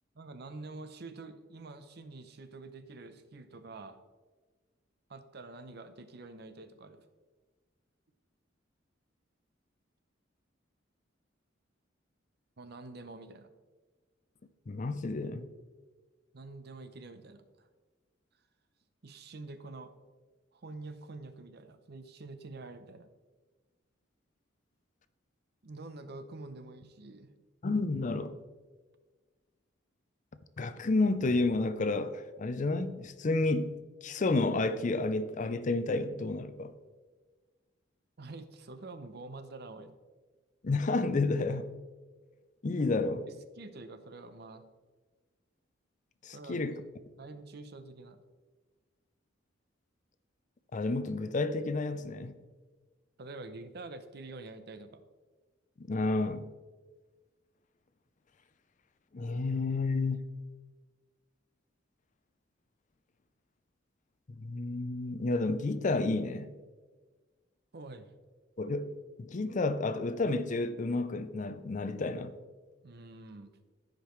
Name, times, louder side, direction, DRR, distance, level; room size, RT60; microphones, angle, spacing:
voice 1, 0.2-4.0 5.1-7.0 12.6-13.5 16.3-17.7 19.0-19.9 20.5-23.1 25.6-27.3 38.2-39.9 43.3-44.6 46.3-46.6 47.2-48.2 53.2-55.0 67.7-68.1 72.8-73.5, right 3 dB, 55° right, 0.7 m, -47 dB
voice 2, 14.7-15.4 27.6-28.3 30.6-33.7 34.0-36.7 40.6-41.7 42.6-43.3 46.2-46.8 50.7-52.3 55.9-56.5 59.1-60.2 64.4-66.5 68.6-68.9 69.2-72.3, left 3 dB, 40° left, 0.5 m, -30 dB
14.5 x 5.2 x 3.1 m
head